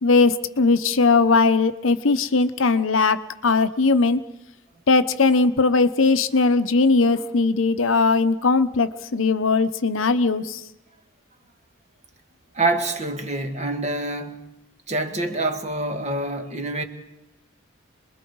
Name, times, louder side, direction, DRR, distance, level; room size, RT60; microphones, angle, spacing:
voice 1, 0.0-4.2 4.9-10.6, left 4 dB, 70° left, 0.9 m, -19 dB
voice 2, 12.5-14.4 14.9-16.8, right 2 dB, 35° right, 1.8 m, -26 dB
26.5 x 21.0 x 4.7 m
head